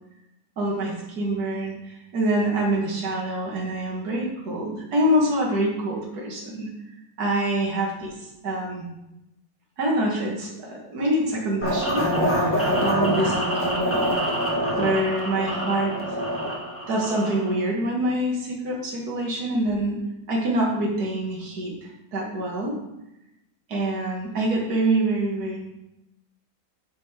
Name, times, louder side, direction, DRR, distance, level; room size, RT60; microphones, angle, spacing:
voice 1, 0.6-6.7 7.2-8.1 8.4-8.9 9.8-14.1 14.7-15.9 16.9-20.0 20.3-22.8 23.7-25.6, right 1 dB, 70° right, -3 dB, 2.3 m, -25 dB
sound 1, 11.6-17.6, equal, 10° left, 1.6 m, -25 dB
9.1 x 6.8 x 3.5 m, 0.89 s
omnidirectional pair, 1.8 m